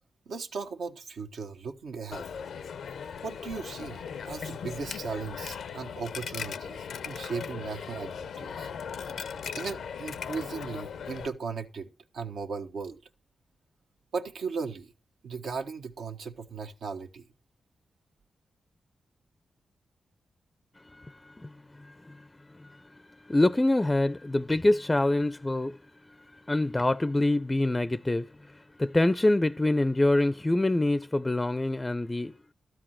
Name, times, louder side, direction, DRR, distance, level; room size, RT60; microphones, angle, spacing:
voice 1, 0.2-2.3 3.2-8.7 9.6-13.0 14.1-14.9 15.2-17.3, right 5 dB, 80° right, 1.3 m, -37 dB
Coin (dropping), 2.1-11.3, left 7 dB, 80° left, 0.6 m, -38 dB
voice 2, 23.3-25.7 26.5-28.3 28.8-32.5, left 1 dB, 20° left, 0.5 m, -25 dB
13.0 x 4.7 x 7.3 m
cardioid pair, 55°, 0 cm